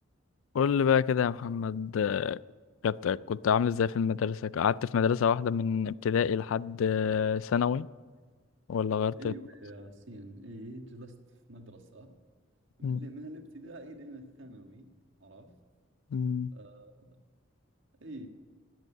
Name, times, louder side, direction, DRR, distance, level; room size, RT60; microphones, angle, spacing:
voice 1, 0.5-2.4 2.8-7.9 8.7-9.3 12.8-13.0 16.1-16.5, left 7 dB, 75° left, 0.3 m, -27 dB
voice 2, 9.2-11.2 11.5-12.2 12.8-14.9 15.2-15.6 16.5-17.2 18.0-18.3, right 1 dB, 65° right, 1.5 m, -46 dB
18.5 x 8.1 x 8.4 m
head